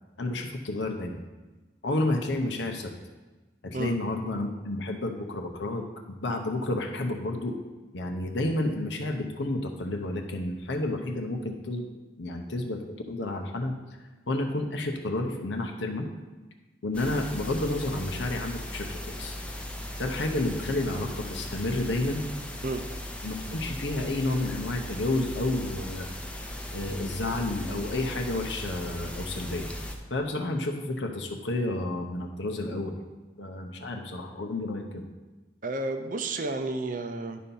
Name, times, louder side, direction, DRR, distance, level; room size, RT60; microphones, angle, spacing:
voice 1, 0.2-1.2 1.8-2.9 3.6-7.6 7.9-11.9 12.2-13.7 14.3-16.1 16.8-19.4 20.0-22.3 23.2-26.1 26.7-29.7 30.1-33.0 33.4-35.0, left 2 dB, 80° left, 3 dB, 0.8 m, -30 dB
sound 1, 16.9-30.0, left 1 dB, 5° left, 0.6 m, -38 dB
voice 2, 35.6-37.4, right 2 dB, 45° right, 7 dB, 0.6 m, -31 dB
10.0 x 4.3 x 5.4 m, 1.2 s
head